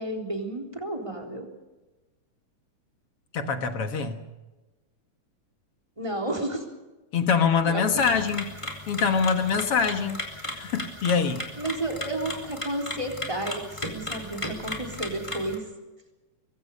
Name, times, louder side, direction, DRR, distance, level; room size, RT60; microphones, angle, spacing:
voice 1, 0.0-1.5 6.0-6.6 7.7-8.3 11.6-15.7, right 1 dB, 10° right, 2 dB, 3.4 m, -32 dB
voice 2, 3.3-4.2 7.1-8.5 8.9-10.2 10.5-11.5, left 6 dB, 55° left, 7 dB, 1.8 m, -24 dB
sound 1, 7.9-15.6, left 1 dB, 10° left, 3.9 m, -36 dB
24.0 x 23.5 x 5.4 m, 1.1 s
omnidirectional pair, 3.9 m